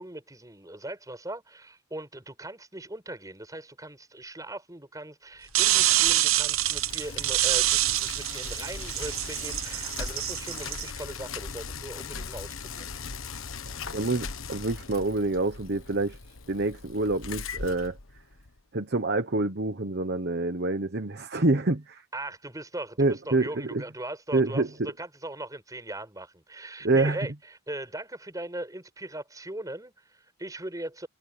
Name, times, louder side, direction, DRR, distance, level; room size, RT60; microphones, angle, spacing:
voice 1, 0.0-12.9 22.1-31.1, right 1 dB, 15° right, 5.4 m, -39 dB
Bicycle, 5.4-18.6, left 5 dB, 75° left, 1.4 m, -39 dB
sound 1, 5.5-10.9, right 14 dB, 80° right, 0.8 m, -26 dB
voice 2, 13.7-16.2 16.5-18.0 18.7-22.0 23.0-23.8 24.3-24.9 26.8-27.2, right 2 dB, 50° right, 1.1 m, -27 dB
head